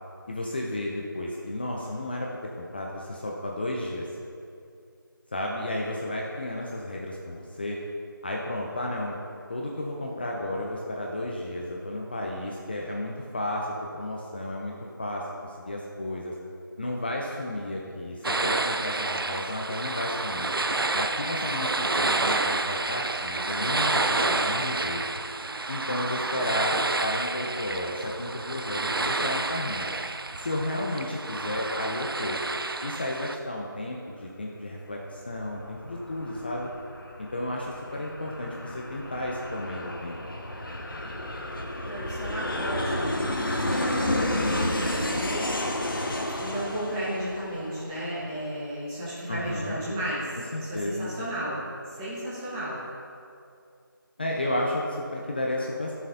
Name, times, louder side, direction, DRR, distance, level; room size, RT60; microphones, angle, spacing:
voice 1, 0.3-2.3 2.6-4.1 5.3-7.8 8.2-9.2 9.5-14.7 15.0-16.4 16.8-20.5 20.9-25.0 25.7-29.9 30.4-32.4 32.8-36.7 37.2-40.2 49.3-49.8 50.5-51.1 54.2-55.9, left 1 dB, 25° left, -2 dB, 0.6 m, -32 dB
sound 1, 18.2-33.4, right 3 dB, 80° right, 0.5 m, -29 dB
Aircraft, 35.1-48.3, left 1 dB, 75° left, 1.4 m, -31 dB
voice 2, 41.8-45.4 46.4-50.3 50.6-51.6 51.9-52.8, right 1 dB, 10° right, -9 dB, 1.1 m, -34 dB
15.0 x 6.7 x 2.7 m, 2.5 s
figure-of-eight pair, 165°, 12 cm